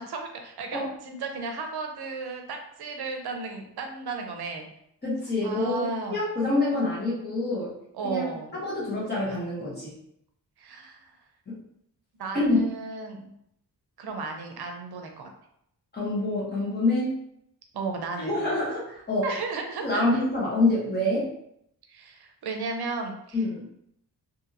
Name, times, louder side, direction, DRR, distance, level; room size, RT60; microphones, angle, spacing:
voice 1, 0.0-4.7 5.4-6.2 7.9-8.5 10.6-11.0 12.2-13.3 14.0-15.3 17.7-18.4 19.2-20.0 21.9-23.4, right 4 dB, 75° right, 4 dB, 0.6 m, -34 dB
voice 2, 5.0-7.7 8.0-8.2 8.5-9.9 11.5-11.6 12.3-12.6 15.9-17.1 18.2-19.3 19.8-21.3 23.3-23.7, left 2 dB, 25° left, -6 dB, 1.0 m, -26 dB
2.8 x 2.6 x 2.6 m, 0.74 s
wide cardioid pair, 175°, 39 cm